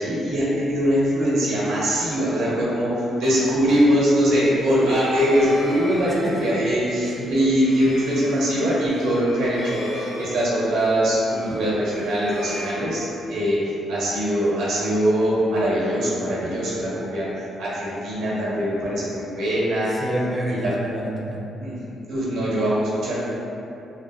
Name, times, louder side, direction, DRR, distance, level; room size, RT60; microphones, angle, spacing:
voice 1, 0.0-17.3 17.6-20.0 20.5-20.7 21.6-23.3, equal, 85° right, -7 dB, 0.9 m, -22 dB
sound 1, 4.4-13.5, equal, 70° left, 1.1 m, -37 dB
voice 2, 6.1-6.4 7.2-7.3 19.9-21.5, right 1 dB, 5° right, -4 dB, 0.3 m, -28 dB
2.9 x 2.7 x 2.2 m, 2.8 s
cardioid pair, 125°, 0 cm